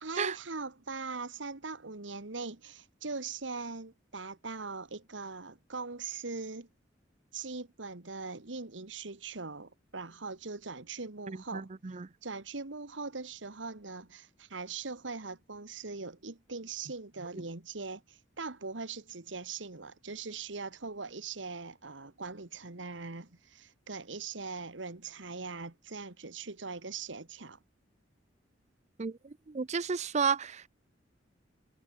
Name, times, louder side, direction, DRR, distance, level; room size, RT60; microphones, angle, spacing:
voice 1, 0.0-6.7 7.3-11.7 12.2-27.6, right 4 dB, 80° right, 1.7 m, -41 dB
voice 2, 11.3-12.1 29.0-30.7, right 6 dB, 40° right, 0.6 m, -33 dB
head